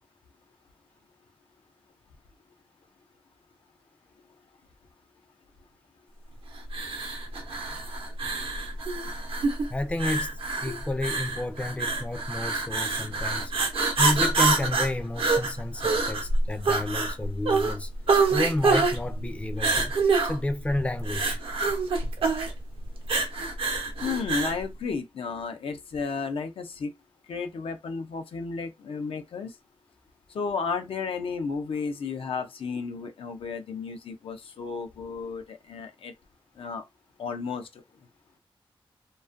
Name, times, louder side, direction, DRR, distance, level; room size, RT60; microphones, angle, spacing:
sound 1, 6.7-24.6, right 3 dB, 80° right, 0.6 m, -26 dB
voice 1, 9.7-13.5 14.0-17.9 18.3-20.0 20.2-21.4, left 1 dB, 15° left, 0.3 m, -31 dB
voice 2, 24.0-26.9 27.3-29.6 30.3-36.1 36.6-36.8 37.2-37.8, left 5 dB, 90° left, 0.5 m, -33 dB
2.5 x 2.3 x 2.4 m
wide cardioid pair, 125°, 9 cm